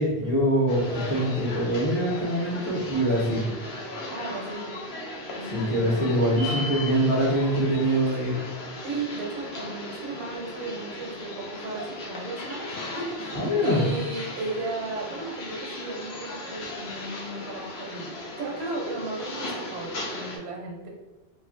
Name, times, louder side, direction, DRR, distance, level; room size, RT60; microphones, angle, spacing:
voice 1, 0.0-3.4 5.5-8.3 13.3-13.8, equal, 60° left, -6 dB, 1.2 m, -24 dB
sound 1, 0.7-20.4, left 1 dB, 80° left, 0.9 m, -37 dB
voice 2, 4.1-4.8 5.4-6.0 8.8-12.7 12.9-20.9, right 2 dB, 90° right, -1 dB, 1.0 m, -35 dB
3.1 x 2.3 x 2.5 m, 0.99 s
omnidirectional pair, 1.1 m